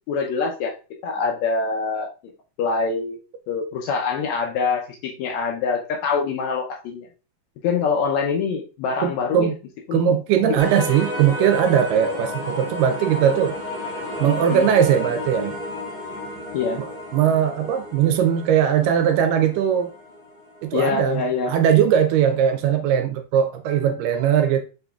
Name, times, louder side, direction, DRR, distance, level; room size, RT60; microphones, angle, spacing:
voice 1, 0.1-0.7 1.0-2.1 2.6-3.2 3.5-7.1 7.6-9.5 9.9-10.1 10.4-10.6 14.5-14.7 16.5-16.8 20.7-21.6, left 5 dB, 90° left, 1.5 m, -24 dB
voice 2, 9.0-9.5 9.9-13.6 14.2-15.6 16.8-19.9 20.6-24.6, right 9 dB, 80° right, 2.1 m, -20 dB
sound 1, 10.6-21.4, left 1 dB, 60° left, 0.4 m, -32 dB
6.0 x 3.8 x 2.3 m
omnidirectional pair, 4.0 m